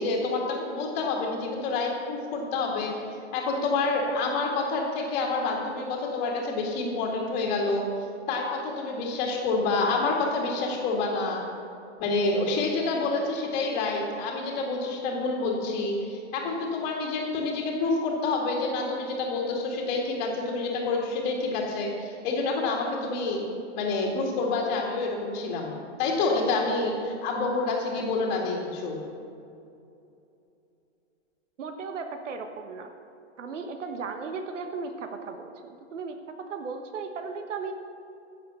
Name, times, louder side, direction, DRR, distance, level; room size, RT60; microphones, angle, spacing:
voice 1, 0.0-2.9 3.3-7.9 8.3-11.5 12.0-23.4 23.7-29.0, left 3 dB, 25° left, -3 dB, 2.1 m, -28 dB
voice 2, 31.6-32.9 33.4-37.7, right 4 dB, 80° right, 6 dB, 1.4 m, -36 dB
15.5 x 7.6 x 6.9 m, 2.7 s
hypercardioid pair, 155°, 36 cm